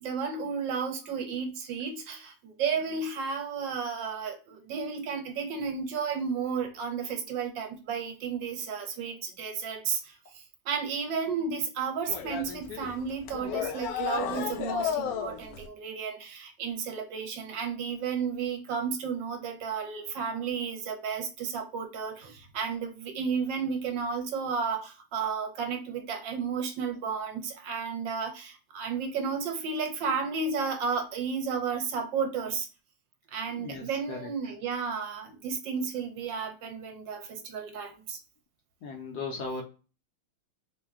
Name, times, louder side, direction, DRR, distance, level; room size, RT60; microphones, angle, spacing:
voice 1, 0.0-32.7 33.3-38.2, right 6 dB, 70° right, 4 dB, 1.3 m, -33 dB
sound 1, 12.1-15.7, left 8 dB, 85° left, 0.8 m, -33 dB
voice 2, 33.5-34.3 38.8-39.6, left 4 dB, 70° left, 1 dB, 1.0 m, -37 dB
4.3 x 2.2 x 3.5 m, 0.33 s
omnidirectional pair, 2.2 m